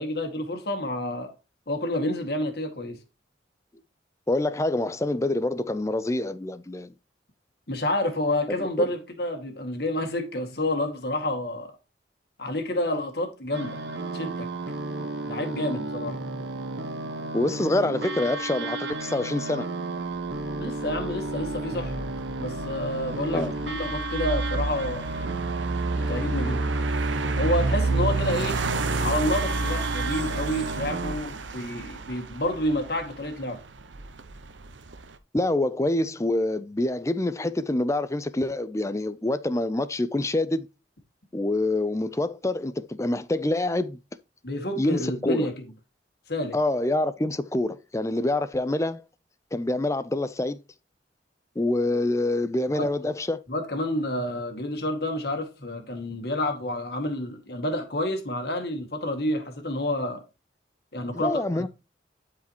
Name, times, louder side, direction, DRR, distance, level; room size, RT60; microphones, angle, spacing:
voice 1, 0.0-1.3 1.7-3.0 7.7-11.7 12.4-13.8 14.1-14.5 15.2-16.2 20.6-22.1 22.4-25.1 26.1-26.7 27.4-28.6 29.0-33.6 44.4-45.6 46.3-46.6 52.7-52.9 53.5-60.2 60.9-61.7, left 1 dB, 55° left, 2.0 m, -29 dB
voice 2, 4.3-6.9 8.5-8.9 17.3-19.7 23.3-23.5 35.3-40.7 41.3-44.0 44.8-45.5 46.5-49.0 49.5-50.6 51.6-53.4 61.1-61.7, left 2 dB, 15° left, 0.4 m, -26 dB
sound 1, 13.5-31.1, right 2 dB, 70° right, 1.2 m, -33 dB
sound 2, 20.3-35.2, right 3 dB, 90° right, 0.9 m, -30 dB
11.5 x 4.9 x 2.9 m
head